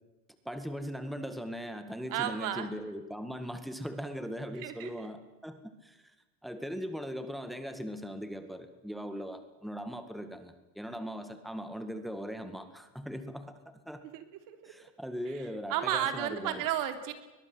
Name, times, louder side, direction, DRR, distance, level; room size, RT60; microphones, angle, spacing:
voice 1, 0.5-6.0 6.4-14.0 14.6-16.6, equal, ahead, 8 dB, 2.0 m, -39 dB
voice 2, 2.1-2.7 4.5-5.1 14.1-14.7 15.3-17.1, right 11 dB, 65° right, 9 dB, 3.5 m, -34 dB
22.5 x 21.5 x 7.9 m, 1.1 s
cardioid pair, 140°, 36 cm